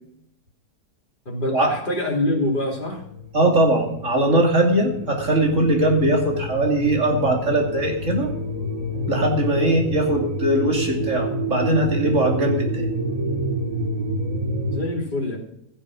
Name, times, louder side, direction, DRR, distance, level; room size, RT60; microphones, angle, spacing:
voice 1, 1.2-3.0 14.7-15.4, left 1 dB, 30° left, -1 dB, 3.4 m, -25 dB
sound 1, 2.9-14.8, equal, 25° right, 1.7 m, -28 dB
voice 2, 3.3-8.3 9.1-12.9, right 1 dB, 50° right, 1 dB, 3.0 m, -20 dB
16.5 x 7.4 x 6.2 m, 0.75 s
omnidirectional pair, 1.7 m